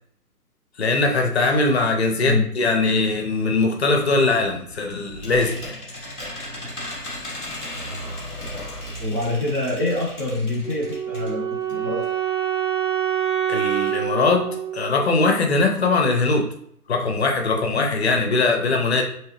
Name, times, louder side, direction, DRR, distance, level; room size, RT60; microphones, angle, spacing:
voice 1, 0.8-5.7 13.5-16.5 16.9-19.0, left 3 dB, 45° left, 3 dB, 0.7 m, -21 dB
sound 1, 4.5-11.4 11.7-11.8 12.0-12.1, left 1 dB, 5° right, 0.6 m, -35 dB
voice 2, 9.0-12.0, left 2 dB, 25° right, -8 dB, 1.0 m, -25 dB
Wind instrument woodwind instrument, 10.6-15.7, right 10 dB, 50° right, 1.5 m, -26 dB
4.6 x 3.1 x 3.0 m, 0.68 s
figure-of-eight pair, 140°, 47 cm